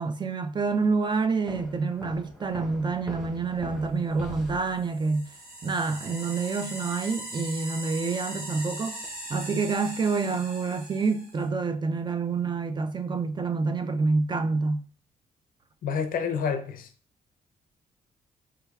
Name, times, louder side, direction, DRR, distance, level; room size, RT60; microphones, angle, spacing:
voice 1, 0.0-5.3 5.6-9.0 9.3-14.9, right 4 dB, 30° right, 0.3 m, -27 dB
sound 1, 1.5-5.2, left 2 dB, 5° right, 0.9 m, -42 dB
sound 2, 4.7-11.5, right 1 dB, 75° right, 1.3 m, -40 dB
voice 2, 15.8-16.9, left 6 dB, 70° left, 0.5 m, -28 dB
4.5 x 2.3 x 2.3 m
cardioid pair, 90°, 15 cm